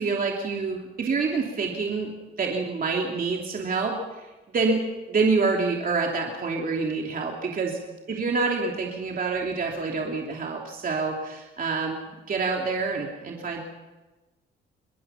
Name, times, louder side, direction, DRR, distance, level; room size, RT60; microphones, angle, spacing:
voice 1, 0.0-2.1 2.4-4.3 4.5-4.8 5.1-7.8 8.1-13.6, right 4 dB, 45° right, 0 dB, 3.0 m, -27 dB
24.0 x 19.5 x 5.8 m, 1.1 s
cardioid pair, 90°, 20 cm